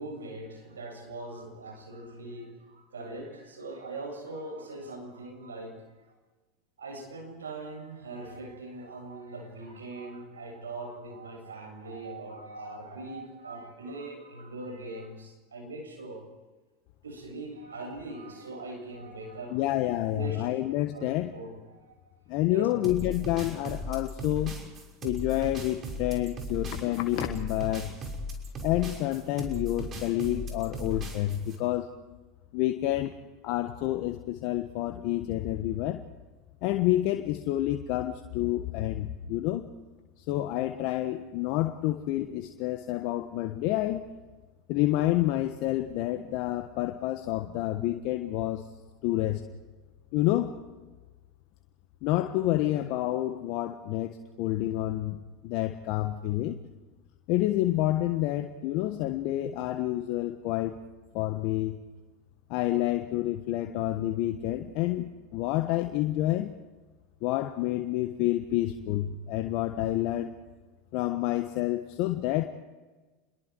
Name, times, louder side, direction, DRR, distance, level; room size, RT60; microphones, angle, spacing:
voice 1, 0.0-6.1 6.8-16.2 17.0-20.5 20.9-22.0 22.5-22.7, right 2 dB, 90° right, 2 dB, 7.8 m, -41 dB
voice 2, 19.5-21.3 22.3-24.5 25.0-27.9 28.6-31.9 32.5-33.1 33.4-36.0 36.6-39.7 40.3-44.0 44.7-48.7 49.0-49.4 50.1-50.5 52.0-56.6 57.3-60.8 61.1-61.8 62.5-66.5 67.2-70.3 70.9-72.4, left 15 dB, 60° left, 7 dB, 1.3 m, -28 dB
sound 1, 22.8-31.6, left 1 dB, 35° right, 5.9 m, -37 dB
28.0 x 22.5 x 4.7 m, 1.3 s
hypercardioid pair, 90°, 0 cm